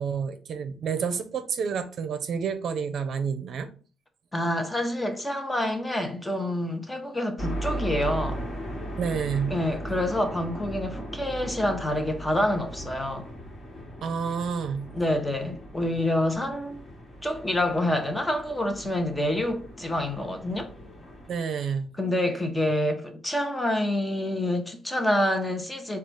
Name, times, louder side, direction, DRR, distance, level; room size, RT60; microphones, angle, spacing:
voice 1, 0.0-3.7 9.0-9.6 14.0-14.9 19.1-19.2 21.3-22.0, right 6 dB, 60° right, 0.5 m, -29 dB
voice 2, 4.3-8.4 9.5-13.3 14.9-16.8 17.2-20.7 22.0-26.0, left 1 dB, 15° left, 0.9 m, -27 dB
sound 1, 7.4-21.4, right 1 dB, 35° left, 1.5 m, -38 dB
3.9 x 2.4 x 4.6 m
cardioid pair, 90°, 0 cm